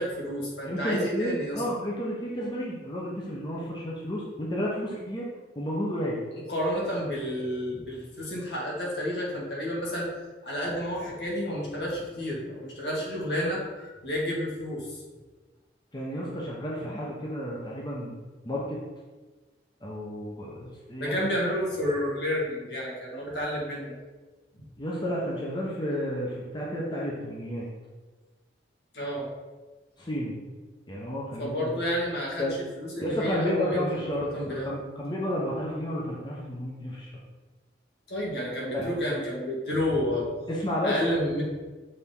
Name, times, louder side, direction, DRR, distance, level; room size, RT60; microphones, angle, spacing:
voice 1, 0.0-1.6 6.5-10.1 10.4-15.0 21.0-23.9 24.5-24.6 28.9-29.3 31.4-34.7 38.1-40.3 40.8-41.4, equal, 70° left, -4 dB, 1.9 m, -30 dB
voice 2, 0.7-5.3 5.6-6.2 15.9-18.2 18.4-18.8 19.8-21.5 24.8-27.7 30.0-30.4 30.9-31.7 32.4-32.6 33.0-34.4 34.6-37.1 38.7-38.9 40.5-41.0, equal, 25° left, -4 dB, 0.9 m, -31 dB
6.4 x 4.1 x 3.8 m, 1.3 s
head